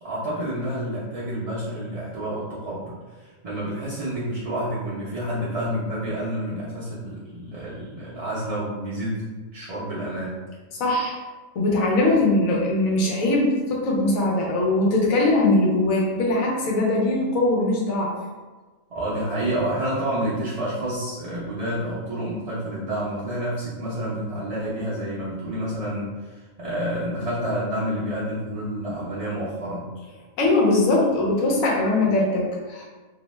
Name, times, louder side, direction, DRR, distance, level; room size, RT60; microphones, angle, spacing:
voice 1, 0.0-10.4 18.9-29.9, right 1 dB, 50° right, -10 dB, 0.4 m, -29 dB
voice 2, 10.8-11.2 11.5-18.1 30.4-32.8, left 2 dB, 85° left, -3 dB, 1.1 m, -21 dB
2.7 x 2.1 x 3.0 m, 1.3 s
omnidirectional pair, 1.4 m